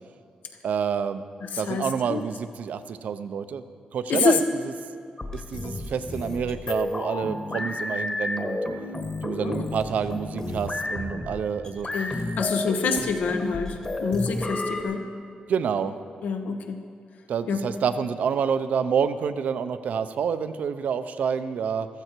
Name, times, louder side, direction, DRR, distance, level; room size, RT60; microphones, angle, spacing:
voice 1, 0.6-1.2 1.6-3.6 3.9-4.4 5.3-8.6 9.2-11.9 15.5-15.9 17.3-21.9, right 7 dB, 70° right, 11 dB, 0.6 m, -28 dB
voice 2, 1.4-2.2 4.1-4.4 9.4-9.7 11.9-15.1 16.2-16.8 17.5-17.6, left 5 dB, 80° left, 6 dB, 1.1 m, -27 dB
sound 1, 5.2-14.8, left 2 dB, 25° left, 1.3 m, -31 dB
14.5 x 14.0 x 4.5 m, 2.4 s
wide cardioid pair, 155°, 3 cm